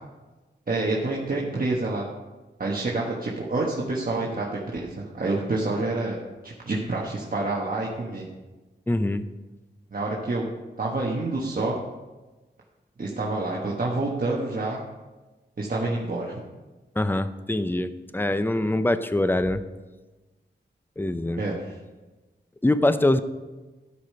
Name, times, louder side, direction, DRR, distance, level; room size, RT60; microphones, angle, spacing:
voice 1, 0.7-2.1 2.6-6.2 6.4-8.3 9.9-10.5 10.8-11.8 13.0-14.8 15.6-16.4 21.4-21.6, right 2 dB, 50° right, -4 dB, 1.3 m, -27 dB
voice 2, 8.9-9.2 17.0-19.6 21.0-21.4 22.6-23.2, left 1 dB, 10° left, 11 dB, 0.5 m, -23 dB
13.0 x 5.0 x 5.6 m, 1.2 s
wide cardioid pair, 95°, 19 cm